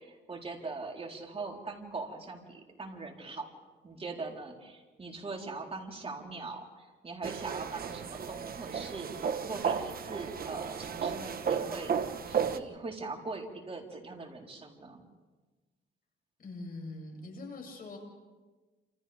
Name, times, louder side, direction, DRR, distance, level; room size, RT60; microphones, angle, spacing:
voice 1, 0.0-3.5 3.8-11.9 12.2-15.0, right 3 dB, 30° right, 0 dB, 4.0 m, -41 dB
sound 1, 7.2-12.6, right 7 dB, 50° right, 1.3 m, -34 dB
voice 2, 16.4-18.0, left 2 dB, 45° left, 0 dB, 7.5 m, -43 dB
29.5 x 27.5 x 3.5 m, 1.3 s
cardioid pair, 90°, 20 cm